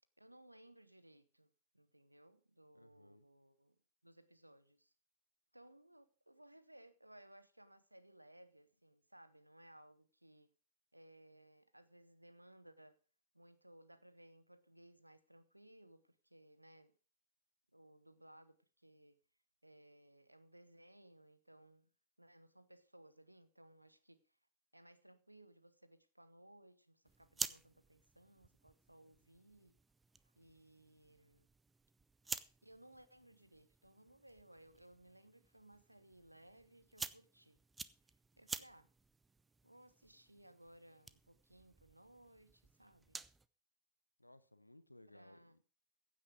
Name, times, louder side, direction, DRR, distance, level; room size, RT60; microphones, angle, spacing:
voice 1, 0.2-3.8 4.0-4.9 5.5-10.5 10.9-13.0 13.3-16.9 17.7-19.2 19.6-21.9 22.2-24.4 24.7-29.8 30.2-31.5 32.2-37.6 38.4-38.9 39.6-43.2 45.1-45.6, right 1 dB, 85° right, 1.0 m, -62 dB
voice 2, 2.7-3.3 44.2-45.6, left 1 dB, 85° left, 0.8 m, -62 dB
sound 1, 27.0-43.5, right 4 dB, 10° right, 0.6 m, -51 dB
15.5 x 8.7 x 4.9 m
figure-of-eight pair, 90°, 0 cm